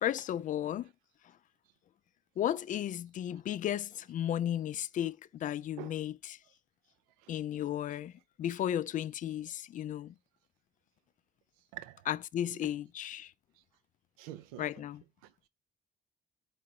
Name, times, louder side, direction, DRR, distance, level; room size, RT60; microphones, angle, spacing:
voice 1, 0.0-0.9 2.4-6.4 7.3-8.1 8.4-10.1 12.1-13.3 14.6-15.0, left 11 dB, 40° left, 0.4 m, -34 dB
voice 2, 11.7-12.1 12.5-12.7 14.2-14.7 15.2-15.3, right 14 dB, 70° right, 0.5 m, -46 dB
4.6 x 4.6 x 4.6 m
figure-of-eight pair, 45°, 20 cm